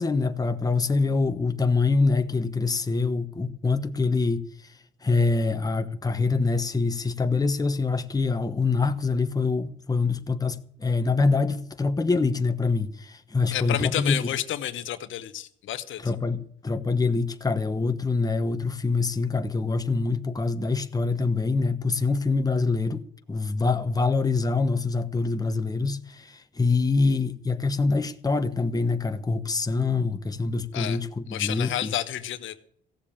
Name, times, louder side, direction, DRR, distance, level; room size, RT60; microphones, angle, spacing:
voice 1, 0.0-14.2 16.0-31.9, left 3 dB, 20° left, 1.1 m, -25 dB
voice 2, 13.5-16.0 30.7-31.0 31.3-32.6, left 12 dB, 75° left, 1.1 m, -30 dB
15.5 x 7.4 x 8.7 m
cardioid pair, 90°, 20 cm